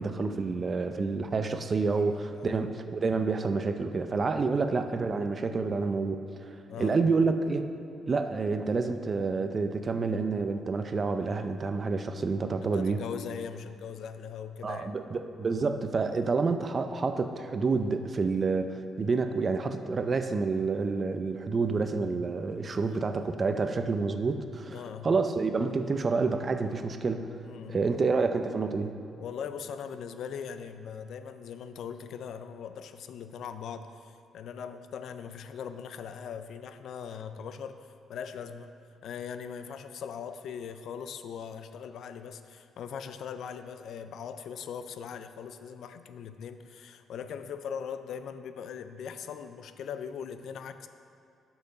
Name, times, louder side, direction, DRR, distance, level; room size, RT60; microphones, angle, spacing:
voice 1, 0.0-6.2 6.8-7.6 8.1-13.0 14.6-27.3 27.7-29.0, right 4 dB, 40° right, 8 dB, 0.5 m, -28 dB
voice 2, 2.0-2.6 4.5-4.6 6.7-7.0 12.6-14.9 16.2-16.3 22.8-23.0 24.7-25.1 27.4-27.9 29.2-38.7 39.0-50.9, left 7 dB, 70° left, 10 dB, 0.4 m, -40 dB
6.6 x 5.7 x 5.7 m, 2.4 s
cardioid pair, 90°, 0 cm